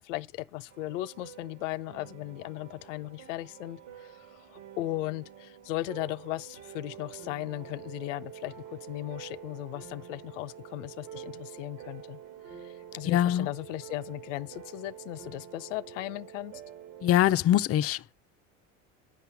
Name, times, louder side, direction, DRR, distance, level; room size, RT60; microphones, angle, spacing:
voice 1, 0.0-12.2 12.6-16.6, left 17 dB, 80° left, 0.7 m, -37 dB
sound 1, 0.7-17.1, right 9 dB, 75° right, 2.7 m, -47 dB
voice 2, 13.1-13.5 17.0-18.1, left 12 dB, 40° left, 0.6 m, -23 dB
9.3 x 5.8 x 8.1 m
hypercardioid pair, 80°, 37 cm